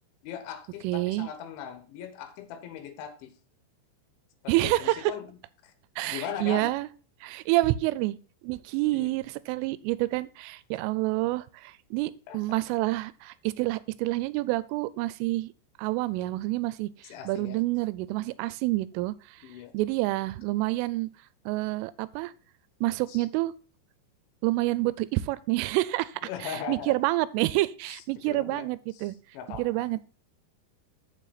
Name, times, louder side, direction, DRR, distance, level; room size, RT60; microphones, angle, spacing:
voice 1, 0.2-3.3 4.4-5.4 5.6-5.7 6.1-6.7 8.9-9.1 12.3-12.4 17.1-17.6 19.4-19.7 23.1-23.2 26.2-27.0 27.9-28.7 28.9-30.0, left 8 dB, 75° left, 9 dB, 3.4 m, -39 dB
voice 2, 0.8-1.3 4.5-5.1 6.0-6.9 7.2-8.2 8.4-15.5 15.8-16.9 17.3-19.4 19.7-21.1 21.5-22.3 22.8-23.5 24.4-29.2 29.5-30.0, right 19 dB, 90° right, 17 dB, 3.1 m, -28 dB
8.3 x 7.2 x 4.0 m, 0.38 s
omnidirectional pair, 5.6 m